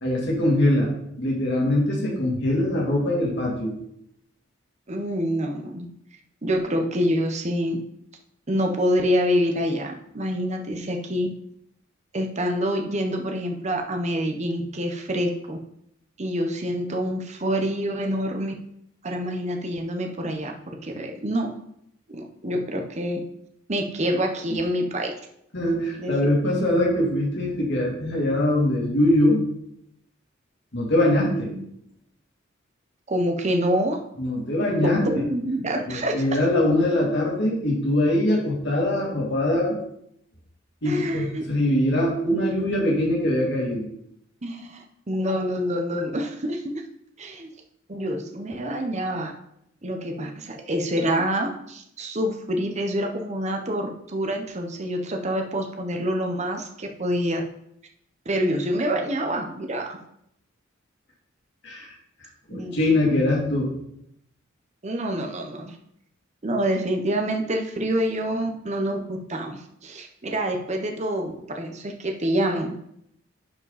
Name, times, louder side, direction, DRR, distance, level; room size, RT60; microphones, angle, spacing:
voice 1, 0.0-0.9 1.2-3.7 25.5-29.4 30.7-31.5 34.2-35.0 35.9-39.8 40.8-43.8 61.6-61.9 62.5-63.7, left 1 dB, 60° left, -3 dB, 2.7 m, -22 dB
voice 2, 4.9-5.9 6.4-7.8 8.5-11.3 12.1-15.6 16.2-18.5 19.0-20.5 20.8-21.5 22.1-23.2 23.7-25.1 26.0-26.1 31.5-31.6 33.1-34.0 34.8-36.2 40.8-41.4 44.4-46.7 47.2-47.5 47.9-49.3 49.8-57.4 58.3-60.0 62.5-62.8 64.8-65.8 66.4-72.7, equal, 35° right, 3 dB, 0.9 m, -26 dB
10.5 x 5.1 x 4.1 m, 0.74 s
head